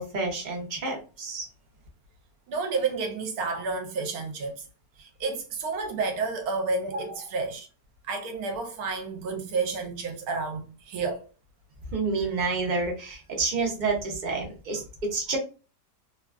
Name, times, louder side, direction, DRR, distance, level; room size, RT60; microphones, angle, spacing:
voice 1, 0.0-1.5 11.9-15.4, right 3 dB, 50° right, 0.5 m, -29 dB
voice 2, 2.5-4.7 5.0-7.7 8.0-11.3, right 4 dB, 70° right, 1.1 m, -30 dB
3.0 x 2.3 x 2.3 m
omnidirectional pair, 1.7 m